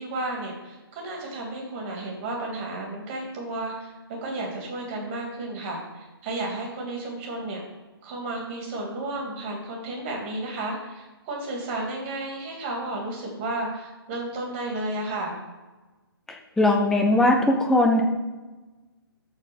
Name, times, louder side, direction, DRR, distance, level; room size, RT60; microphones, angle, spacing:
voice 1, 0.0-7.6 8.0-15.4, right 2 dB, 25° right, 0 dB, 2.9 m, -32 dB
voice 2, 16.6-18.0, left 1 dB, 5° left, 0 dB, 0.7 m, -19 dB
13.0 x 4.5 x 5.5 m, 1.2 s
figure-of-eight pair, 135°, 13 cm